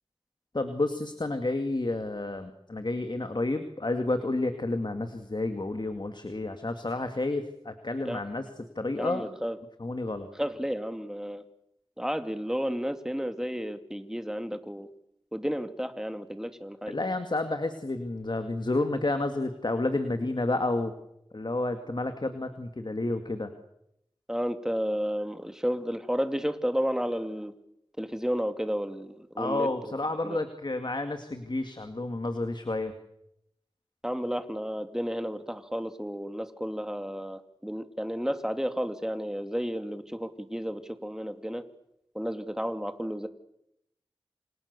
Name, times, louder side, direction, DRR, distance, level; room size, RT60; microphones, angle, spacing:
voice 1, 0.5-8.5 8.8-9.3 9.8-10.3 16.9-20.9 21.3-23.5 29.4-32.9, left 2 dB, 55° left, 7 dB, 2.3 m, -30 dB
voice 2, 9.0-9.6 10.4-11.4 12.0-14.9 15.3-17.0 24.3-27.5 28.0-29.7 30.2-30.4 34.0-41.6 42.1-43.3, equal, 5° right, 8 dB, 2.6 m, -32 dB
28.5 x 27.5 x 6.9 m, 0.79 s
wide cardioid pair, 50°, 9 cm